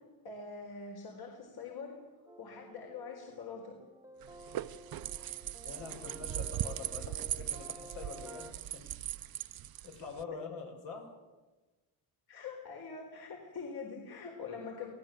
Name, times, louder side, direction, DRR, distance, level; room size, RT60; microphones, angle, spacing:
voice 1, 0.2-2.0 2.4-3.7 12.3-14.9, left 5 dB, 55° left, 1 dB, 4.3 m, -44 dB
sound 1, 2.3-8.5, right 2 dB, 5° right, 1.4 m, -52 dB
sound 2, 4.2-10.2, right 12 dB, 50° right, 0.7 m, -39 dB
voice 2, 5.6-9.0 9.8-11.1, left 5 dB, 75° left, 3 dB, 6.7 m, -45 dB
28.0 x 18.5 x 7.6 m, 1.2 s
cardioid pair, 140°, 45 cm